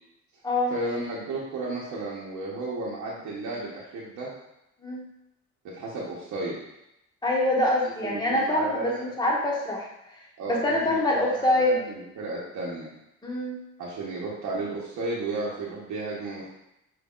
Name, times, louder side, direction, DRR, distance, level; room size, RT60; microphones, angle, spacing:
voice 1, 0.7-4.3 5.6-6.6 7.8-9.1 10.4-12.9 13.8-16.5, right 2 dB, 75° right, -6 dB, 1.0 m, -33 dB
voice 2, 7.2-9.9 10.5-11.8 13.2-13.6, left 1 dB, 15° left, -3 dB, 1.2 m, -25 dB
5.4 x 3.2 x 2.4 m, 0.84 s
cardioid pair, 90°, 30 cm